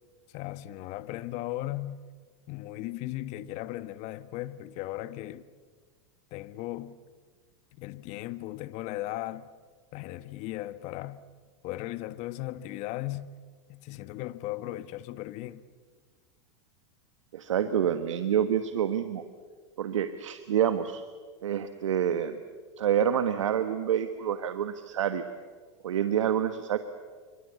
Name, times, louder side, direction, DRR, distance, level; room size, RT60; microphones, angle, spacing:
voice 1, 0.3-2.0 2.5-5.5 6.3-7.0 7.7-9.5 9.9-11.2 11.6-13.3 13.7-15.6, left 15 dB, 50° left, 1.3 m, -37 dB
voice 2, 17.3-19.2 19.8-21.0 21.4-22.4 22.8-25.2 25.8-26.8, right 9 dB, 85° right, 1.4 m, -27 dB
27.5 x 24.5 x 8.3 m
hypercardioid pair, 110°, 16 cm